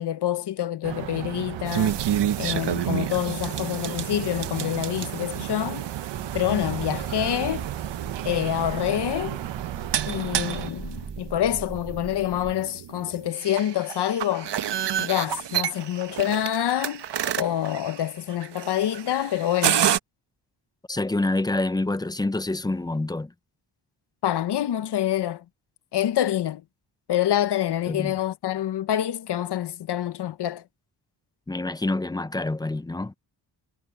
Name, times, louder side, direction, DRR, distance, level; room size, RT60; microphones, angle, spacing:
voice 1, 0.0-2.0 2.4-5.9 6.3-7.7 8.2-9.4 10.0-14.5 15.0-17.0 17.4-19.8 24.2-25.4 25.9-26.6 27.1-30.6, left 11 dB, 65° left, 0.8 m, -26 dB
sound 1, 0.8-10.7, right 13 dB, 90° right, 0.9 m, -34 dB
sound 2, 1.6-20.0, right 10 dB, 65° right, 1.3 m, -30 dB
sound 3, 6.1-12.5, right 5 dB, 25° right, 0.8 m, -39 dB
voice 2, 20.9-23.3 27.9-28.2 31.5-33.1, left 2 dB, 10° left, 0.5 m, -27 dB
wide cardioid pair, 140°, 44 cm